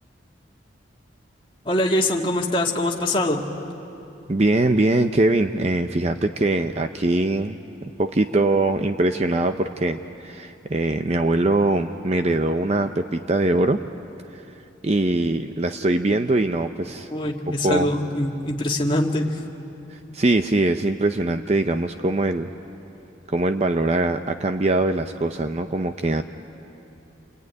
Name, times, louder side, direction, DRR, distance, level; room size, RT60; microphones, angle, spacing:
voice 1, 1.7-3.4 17.1-19.4, left 1 dB, 25° left, -1 dB, 1.9 m, -23 dB
voice 2, 4.3-13.8 14.3-14.4 14.8-17.1 17.6-17.9 19.9-22.5 23.3-26.2, right 2 dB, 35° right, 7 dB, 0.6 m, -22 dB
28.0 x 22.0 x 9.5 m, 2.9 s
head